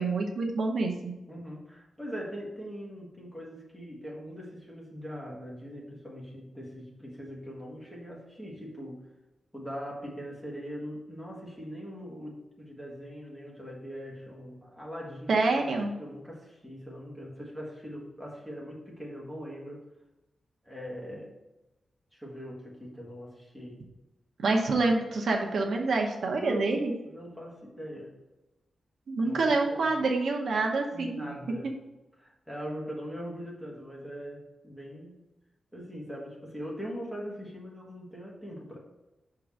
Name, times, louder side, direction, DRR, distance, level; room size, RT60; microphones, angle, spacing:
voice 1, 0.0-1.1 15.3-15.9 24.4-26.9 29.1-31.4, right 3 dB, 70° right, 1 dB, 0.9 m, -27 dB
voice 2, 1.3-9.0 9.5-15.7 16.0-19.8 20.6-21.3 22.1-23.8 26.3-26.8 27.0-28.2 29.2-29.9 30.9-31.8 32.2-35.2 35.7-38.8, equal, ahead, -4 dB, 1.6 m, -41 dB
6.0 x 3.9 x 6.1 m, 1.0 s
wide cardioid pair, 175°, 0 cm